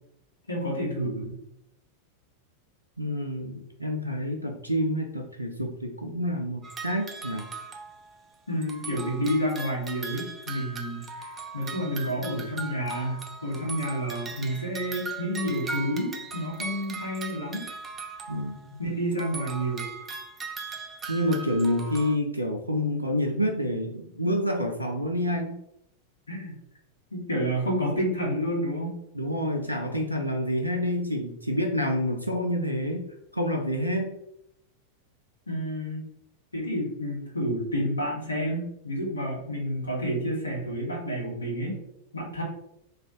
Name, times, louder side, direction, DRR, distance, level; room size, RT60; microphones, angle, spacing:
voice 1, 0.5-1.4 8.5-17.7 18.8-19.9 26.3-26.5 27.1-28.9 35.5-36.0 36.5-41.7 42.1-42.4, equal, 75° left, -2 dB, 1.1 m, -30 dB
voice 2, 3.0-7.5 18.3-18.8 21.1-25.6 29.1-33.1 33.3-34.2, equal, 85° right, 3 dB, 0.4 m, -28 dB
sound 1, 6.6-8.4 8.6-18.8 19.1-22.2, right 4 dB, 20° right, 0.4 m, -39 dB
3.2 x 2.4 x 3.7 m, 0.79 s
figure-of-eight pair, 90°, 0 cm